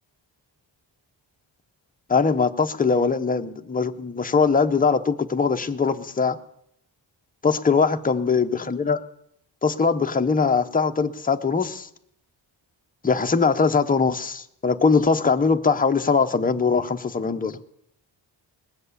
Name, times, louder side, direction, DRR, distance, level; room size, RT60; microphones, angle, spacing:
voice 1, 2.1-6.4 7.4-9.0 9.6-11.9 13.0-17.6, left 5 dB, 20° left, 7 dB, 0.6 m, -21 dB
20.0 x 7.9 x 8.2 m, 0.75 s
wide cardioid pair, 155°, 46 cm